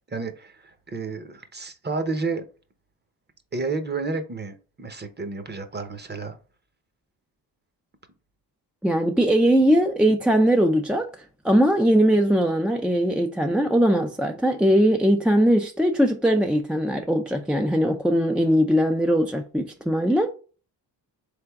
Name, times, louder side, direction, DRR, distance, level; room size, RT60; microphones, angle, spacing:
voice 1, 0.1-2.5 3.5-6.4, right 3 dB, 25° right, 0.8 m, -31 dB
voice 2, 8.8-11.1 11.4-20.3, equal, ahead, 0.3 m, -20 dB
3.8 x 3.4 x 3.5 m
cardioid pair, 90°, 45 cm